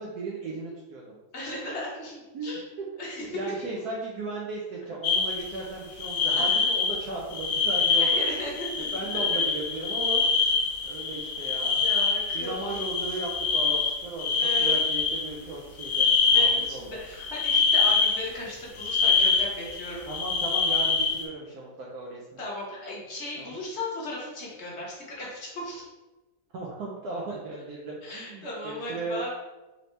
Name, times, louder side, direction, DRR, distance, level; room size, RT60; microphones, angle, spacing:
voice 1, 0.0-1.2 2.3-2.6 3.2-8.5 8.7-10.5 10.8-11.8 12.3-17.0 20.1-22.2 23.4-23.5 26.5-29.2, right 3 dB, 75° right, -3 dB, 0.9 m, -36 dB
voice 2, 1.3-2.6 3.0-3.4 6.3-6.6 8.0-9.2 11.8-12.8 14.4-14.8 16.3-20.0 22.4-25.8 27.3-27.4 28.0-29.3, left 1 dB, 45° left, -4 dB, 1.0 m, -36 dB
sound 1, 5.0-5.6 6.0-7.0 7.3-15.3 15.8-16.7 17.2-18.2 18.8-21.2, left 4 dB, 85° left, 1.6 m, -25 dB
4.3 x 2.7 x 3.2 m, 1.1 s
omnidirectional pair, 2.2 m